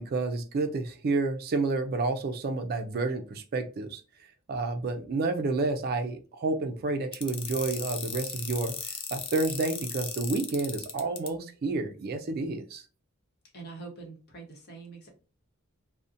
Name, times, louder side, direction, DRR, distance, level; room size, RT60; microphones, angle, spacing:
voice 1, 0.0-4.0 4.5-8.7 9.1-12.8, right 3 dB, 45° right, 7 dB, 0.4 m, -30 dB
sound 1, 7.1-11.3, left 7 dB, 25° left, 0.3 m, -36 dB
voice 2, 13.5-15.1, right 4 dB, 50° left, 0 dB, 0.9 m, -44 dB
2.6 x 2.0 x 2.5 m, 0.35 s
head